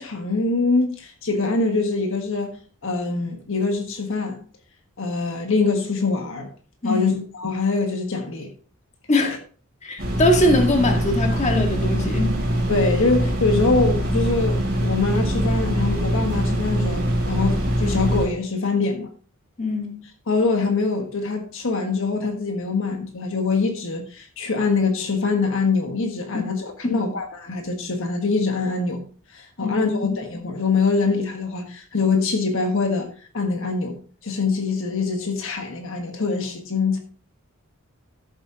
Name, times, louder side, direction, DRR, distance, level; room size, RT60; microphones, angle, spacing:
voice 1, 0.0-4.4 5.0-6.5 6.8-8.5 9.1-9.4 12.7-19.1 20.3-37.0, left 4 dB, 65° left, 1.5 m, -24 dB
voice 2, 6.8-7.2 9.1-9.4 9.8-12.3 19.6-20.0 26.3-26.5 26.8-27.1 29.6-30.2, left 1 dB, 35° left, 1.7 m, -22 dB
sound 1, 10.0-18.3, equal, 50° right, 4.1 m, -23 dB
13.5 x 7.6 x 2.9 m
head